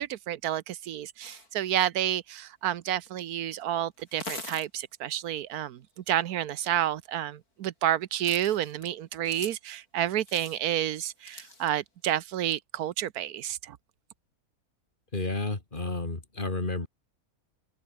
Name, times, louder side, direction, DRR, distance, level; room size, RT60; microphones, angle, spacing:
voice 1, 0.0-5.8 6.1-13.8, right 11 dB, 85° right, 1.3 m, -30 dB
sound 1, 1.2-1.5 3.1-3.2 4.0-4.7 6.8-6.9 8.2-8.9 9.2-9.5 10.1-10.6 11.2-11.7, left 2 dB, 80° left, 6.2 m, -42 dB
voice 2, 15.1-16.9, left 2 dB, 35° left, 2.9 m, -31 dB
open air
omnidirectional pair, 1.6 m